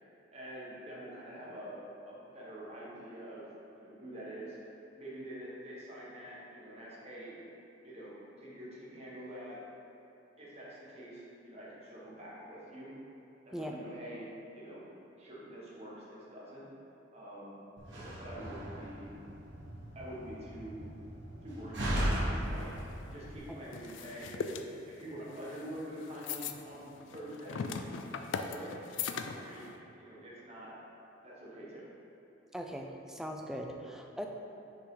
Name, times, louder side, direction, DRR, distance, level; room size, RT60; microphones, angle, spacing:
voice 1, 0.3-1.8 2.1-3.5 3.8-4.6 4.9-7.3 7.8-9.6 10.4-12.9 13.5-14.3 14.5-14.9 15.2-16.6 17.1-17.6 17.9-19.1 19.9-20.8 21.4-22.7 23.1-24.3 24.8-27.7 28.4-28.8 29.2-29.7 30.0-30.7 31.2-31.9, right 1 dB, 35° right, -7 dB, 1.5 m, -46 dB
Slam, 17.8-23.4, equal, 60° right, 1.2 m, -37 dB
sound 1, 22.4-29.8, left 5 dB, 70° left, 0.4 m, -40 dB
voice 2, 32.5-34.3, equal, 5° right, 2 dB, 0.4 m, -40 dB
6.8 x 5.1 x 3.8 m, 2.8 s
head